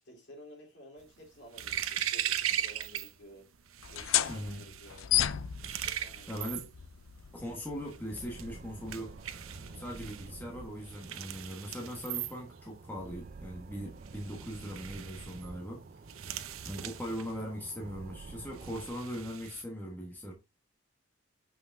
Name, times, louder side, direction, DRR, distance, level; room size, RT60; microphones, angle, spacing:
voice 1, 0.0-3.5 3.9-5.1 5.6-6.4 9.6-9.9 16.1-16.4, equal, 55° left, 3.4 m, -54 dB
sound 1, 1.0-3.1 3.4-19.6, right 10 dB, 80° right, 0.7 m, -39 dB
sound 2, 3.8-11.1, left 12 dB, 75° left, 0.5 m, -35 dB
voice 2, 4.3-4.7 6.3-6.7 7.3-9.2 9.7-15.8 16.6-20.3, equal, 10° left, 1.3 m, -40 dB
sound 3, 8.1-18.9, right 3 dB, 40° right, 0.4 m, -49 dB
7.5 x 5.7 x 2.6 m
head